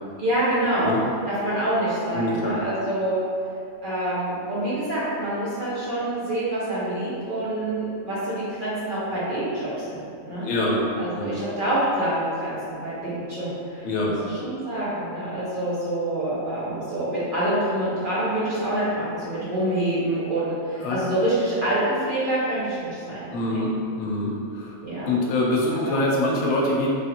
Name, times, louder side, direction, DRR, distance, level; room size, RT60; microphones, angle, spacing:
voice 1, 0.2-0.9 1.3-3.2 3.8-10.5 11.0-23.6 24.8-25.1 25.7-26.1, right 1 dB, 45° right, -10 dB, 0.8 m, -26 dB
voice 2, 2.1-2.5 10.4-10.8 11.1-11.3 13.8-14.2 20.8-21.0 23.3-24.7 25.0-26.9, left 1 dB, 70° left, -3 dB, 0.9 m, -24 dB
3.3 x 2.4 x 2.8 m, 2.5 s
omnidirectional pair, 1.5 m